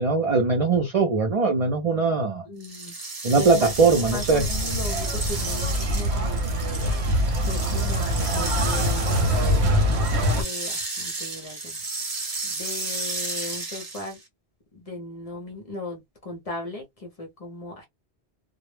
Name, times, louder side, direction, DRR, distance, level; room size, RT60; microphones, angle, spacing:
voice 1, 0.0-2.4 3.2-4.5 8.2-8.4, right 4 dB, 55° right, 0.4 m, -21 dB
voice 2, 2.5-9.8 10.3-11.8 12.0-12.1 12.4-14.2 14.7-17.9, left 2 dB, 45° left, 0.5 m, -38 dB
sound 1, 2.6-14.2, right 3 dB, 35° right, 0.8 m, -33 dB
sound 2, 3.4-10.4, equal, 80° right, 0.9 m, -24 dB
2.0 x 2.0 x 3.1 m
omnidirectional pair, 1.1 m